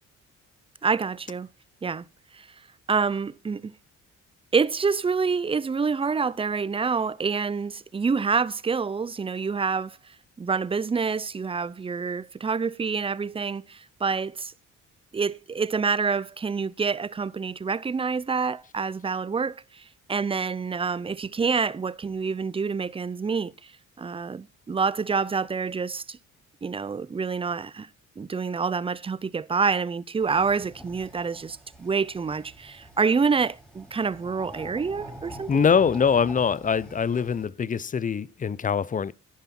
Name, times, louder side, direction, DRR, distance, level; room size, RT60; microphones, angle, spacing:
voice 1, 0.8-1.5 1.8-2.0 2.3-2.5 2.9-3.7 4.5-10.0 10.4-14.5 15.1-19.8 20.1-23.5 24.0-26.2 26.6-27.9 28.2-35.7, right 5 dB, 20° right, 0.5 m, -27 dB
sound 1, 30.2-37.5, right 1 dB, 5° left, 3.5 m, -45 dB
voice 2, 35.5-39.1, left 6 dB, 25° left, 0.5 m, -23 dB
11.0 x 9.8 x 4.3 m
cardioid pair, 90°, 30 cm